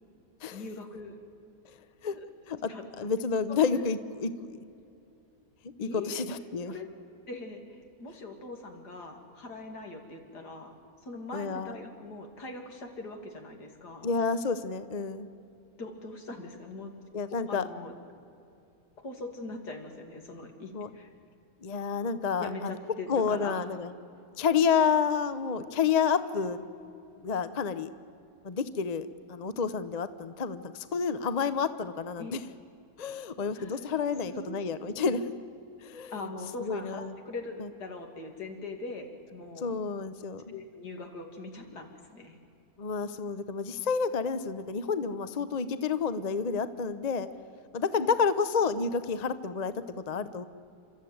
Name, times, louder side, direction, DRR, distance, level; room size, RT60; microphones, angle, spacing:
voice 1, 0.5-1.2 2.1-2.3 2.7-2.8 3.5-3.6 5.8-6.2 6.7-6.9 7.3-10.7 11.0-14.1 15.8-16.9 17.5-18.0 19.0-21.1 22.4-23.7 32.2-32.4 33.6-33.8 34.3-34.6 35.0-35.2 36.1-39.8 40.5-42.4, left 2 dB, 70° left, 4 dB, 3.0 m, -41 dB
voice 2, 3.0-4.6 5.8-6.8 11.3-11.7 14.0-15.3 17.1-17.6 20.7-20.9 21.6-22.8 23.1-23.9 24.4-26.6 27.2-27.9 28.4-32.4 33.0-35.3 35.8-36.1 36.6-37.1 37.6-37.7 39.6-40.5 42.8-47.3 47.7-50.4, left 5 dB, 40° left, 13 dB, 0.6 m, -29 dB
29.5 x 13.5 x 9.4 m, 2.6 s
omnidirectional pair, 1.8 m